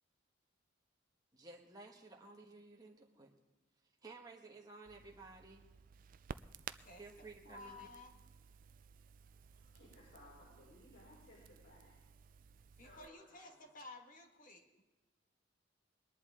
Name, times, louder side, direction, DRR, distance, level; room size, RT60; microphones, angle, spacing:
voice 1, 1.3-3.3 4.0-5.6 7.0-7.9 9.5-9.6, right 3 dB, 20° right, -1 dB, 1.3 m, -55 dB
Crackle, 4.8-13.1, right 7 dB, 45° right, 0.3 m, -55 dB
voice 2, 6.8-8.2 12.8-14.8, left 2 dB, 45° left, 3 dB, 1.7 m, -55 dB
voice 3, 9.5-12.0 12.8-13.7, left 1 dB, 75° left, -8 dB, 5.4 m, -61 dB
22.0 x 11.0 x 3.7 m, 1.2 s
head